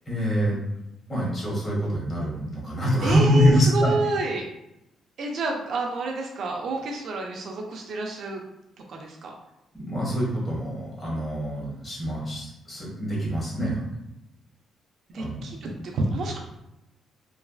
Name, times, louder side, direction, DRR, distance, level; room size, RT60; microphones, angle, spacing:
voice 1, 0.0-0.6 1.1-3.9 9.7-13.9 15.2-15.4, equal, 25° left, -5 dB, 1.4 m, -25 dB
voice 2, 3.0-4.5 5.2-8.4 8.9-9.3 15.1-16.4, right 2 dB, 65° right, 1 dB, 0.5 m, -29 dB
3.2 x 2.3 x 2.3 m, 0.87 s
cardioid pair, 90°, 0 cm